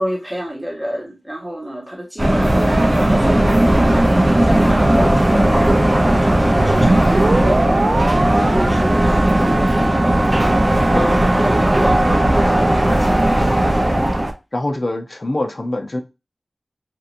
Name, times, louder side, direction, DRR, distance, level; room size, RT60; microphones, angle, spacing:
voice 1, 0.0-5.5 6.2-7.8 8.3-10.2 10.6-13.4, equal, 5° right, 1.4 m, -28 dB
sound 1, 2.2-14.3, right 1 dB, 30° right, 0.7 m, -16 dB
sound 2, 6.6-12.3, right 2 dB, 70° right, 0.4 m, -25 dB
voice 2, 14.5-16.0, left 1 dB, 50° left, 0.7 m, -24 dB
2.9 x 2.5 x 2.6 m
wide cardioid pair, 45°, 0 cm